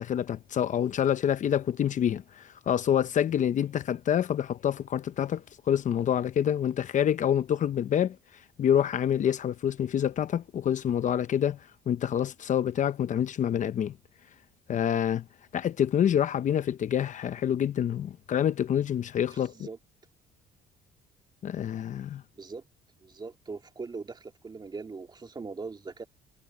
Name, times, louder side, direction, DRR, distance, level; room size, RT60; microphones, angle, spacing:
voice 1, 0.0-8.2 8.6-11.6 11.9-13.9 14.7-15.2 15.5-19.5 21.4-22.2, left 9 dB, 45° left, 0.8 m, -27 dB
voice 2, 19.3-19.8 22.4-22.6 23.0-26.0, right 4 dB, 25° right, 2.4 m, -40 dB
cardioid pair, 110°, 17 cm